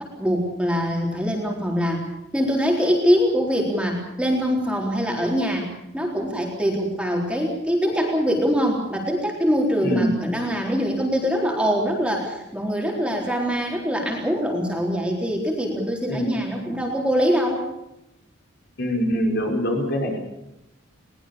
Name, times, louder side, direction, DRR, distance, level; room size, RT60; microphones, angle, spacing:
voice 1, 0.0-2.0 2.3-5.7 5.9-17.6, equal, 5° right, 0 dB, 4.0 m, -23 dB
voice 2, 18.8-20.2, equal, 55° left, 1 dB, 5.3 m, -23 dB
22.5 x 20.0 x 7.1 m, 0.87 s
head